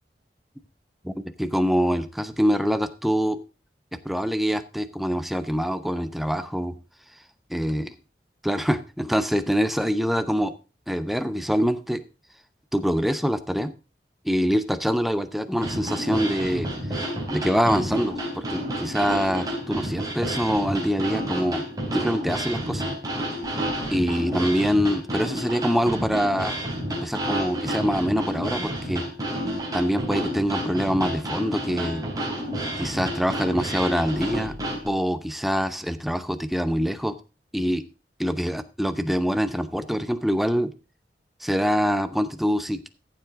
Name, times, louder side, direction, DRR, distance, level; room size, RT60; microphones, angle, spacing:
voice 1, 1.0-3.4 3.9-6.8 7.5-7.9 8.4-10.5 10.9-12.0 12.7-13.7 14.2-16.7 17.3-21.6 21.9-22.8 23.9-26.6 26.9-29.1 29.7-32.0 32.8-34.6 34.9-37.2 37.5-37.8 38.2-40.7 41.4-42.9, equal, ahead, 11 dB, 0.7 m, -25 dB
sound 1, 15.6-34.9, right 1 dB, 20° right, 4.0 m, -30 dB
14.5 x 7.7 x 3.6 m, 0.30 s
head